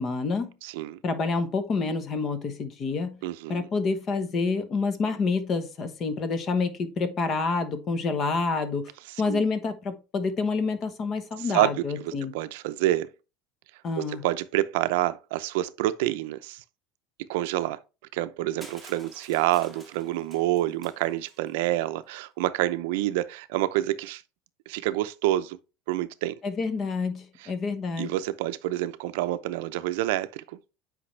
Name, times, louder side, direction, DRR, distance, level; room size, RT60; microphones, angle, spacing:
voice 1, 0.0-0.5 1.0-3.2 3.5-8.9 9.2-12.3 13.8-14.2 26.4-28.1, left 4 dB, 30° left, 1.1 m, -28 dB
voice 2, 0.6-1.0 3.2-3.7 9.3-9.4 11.4-13.1 14.0-16.6 17.3-17.8 18.1-24.2 24.7-25.6 25.9-26.4 28.0-30.6, right 15 dB, 80° right, 0.6 m, -28 dB
Crushing, 18.6-21.5, right 1 dB, 5° left, 1.5 m, -50 dB
8.5 x 5.3 x 3.3 m
cardioid pair, 155°, 0 cm